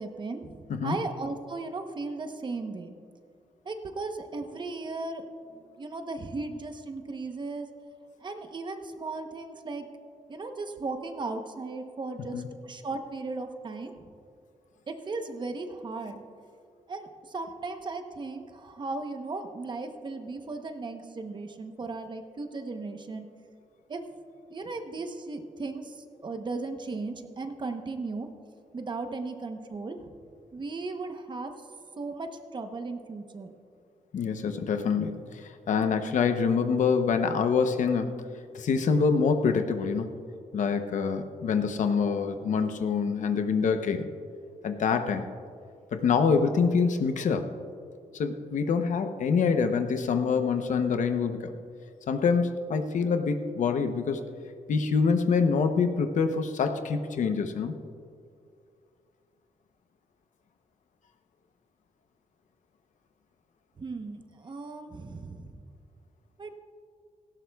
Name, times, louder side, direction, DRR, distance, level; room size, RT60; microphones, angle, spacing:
voice 1, 0.0-2.9 3.6-5.2 5.8-7.7 8.2-9.8 10.3-13.9 14.9-16.2 16.9-23.3 23.9-24.0 24.5-25.9 26.2-28.3 28.7-30.1 30.5-31.5 32.0-33.5 63.8-65.6 66.4-66.6, right 3 dB, 35° right, 6 dB, 0.9 m, -36 dB
voice 2, 34.1-38.3 38.5-40.1 40.5-44.1 44.6-45.2 45.9-47.5 48.1-51.5 52.1-54.2 54.7-57.8, left 5 dB, 70° left, 7 dB, 0.8 m, -26 dB
17.5 x 16.0 x 2.3 m, 2.3 s
wide cardioid pair, 140°, 13 cm